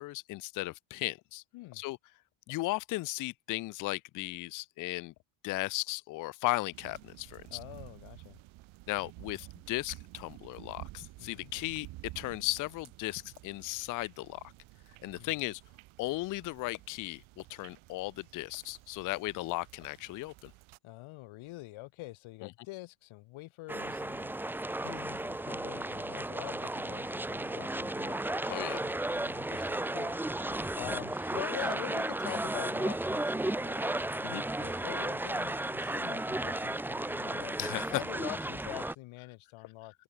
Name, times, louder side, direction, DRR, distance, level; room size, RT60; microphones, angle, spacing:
voice 1, 0.0-1.4 1.8-2.0 2.5-5.1 5.4-7.6 8.9-11.9 12.2-14.4 15.0-15.6 16.0-20.5 28.4-28.8 34.2-34.4 37.6-38.0, left 20 dB, 40° left, 0.4 m, -36 dB
sound 1, 6.7-20.8, right 19 dB, 70° right, 2.9 m, -52 dB
voice 2, 7.5-8.4 11.2-11.5 15.2-15.4 20.8-30.5 30.7-37.6 37.9-40.0, left 19 dB, 70° left, 2.5 m, -45 dB
sound 2, 23.7-38.9, right 1 dB, 5° right, 0.8 m, -34 dB
cardioid pair, 165°, 50 cm